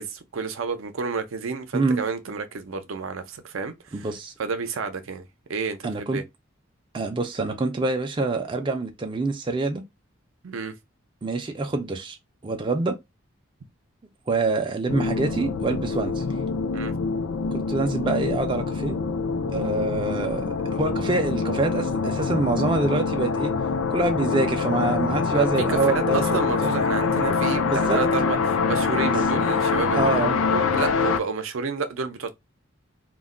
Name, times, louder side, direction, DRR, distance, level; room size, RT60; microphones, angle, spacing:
voice 1, 0.0-4.1 4.4-6.2 10.4-10.7 16.7-16.9 25.3-30.2 30.5-32.3, right 5 dB, 85° right, 0.5 m, -30 dB
voice 2, 3.9-4.3 5.8-6.2 6.9-9.8 11.2-12.2 12.4-13.0 14.3-16.2 17.5-19.0 19.5-20.5 20.7-23.5 23.9-26.7 27.6-28.0 29.0-29.4 29.9-30.4, right 3 dB, 25° right, 0.3 m, -26 dB
sound 1, 14.9-31.2, left 4 dB, 90° left, 0.4 m, -25 dB
2.2 x 2.1 x 3.6 m
head